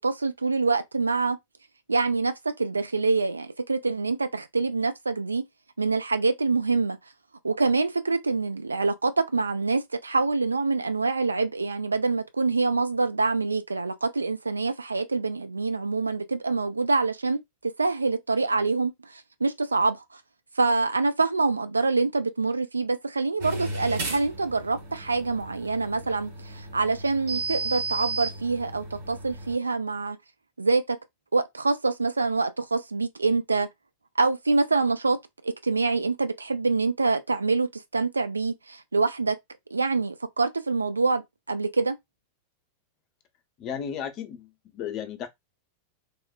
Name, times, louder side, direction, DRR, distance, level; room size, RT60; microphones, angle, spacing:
voice 1, 0.0-1.4 1.9-5.4 5.8-7.0 7.4-17.4 17.8-20.2 20.6-30.2 30.6-31.0 31.3-33.7 34.2-35.2 35.4-39.4 39.7-41.2 41.5-42.0, right 3 dB, 80° right, 0.3 m, -25 dB
sound 1, 23.4-29.5, right 2 dB, 55° right, 1.0 m, -34 dB
voice 2, 43.6-45.3, left 8 dB, 40° left, 0.5 m, -34 dB
3.0 x 2.0 x 2.3 m
figure-of-eight pair, 90°, 0 cm